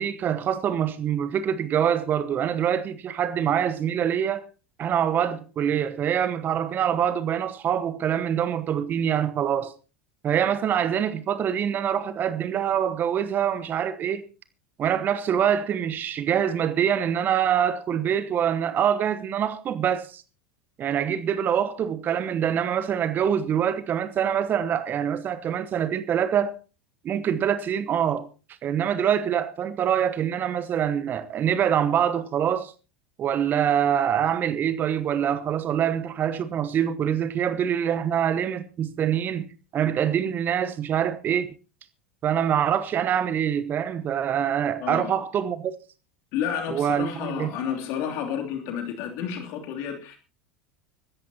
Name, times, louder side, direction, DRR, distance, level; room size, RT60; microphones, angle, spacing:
voice 1, 0.0-4.5 4.8-9.7 10.2-14.2 14.8-20.2 20.8-26.5 27.0-28.3 28.6-32.7 33.2-41.5 42.2-45.7 46.7-47.5, right 9 dB, 30° right, 1.0 m, -25 dB
voice 2, 44.8-45.2 46.3-50.2, left 8 dB, 50° left, 3.0 m, -31 dB
25.5 x 13.5 x 2.9 m
figure-of-eight pair, 80°, 6 cm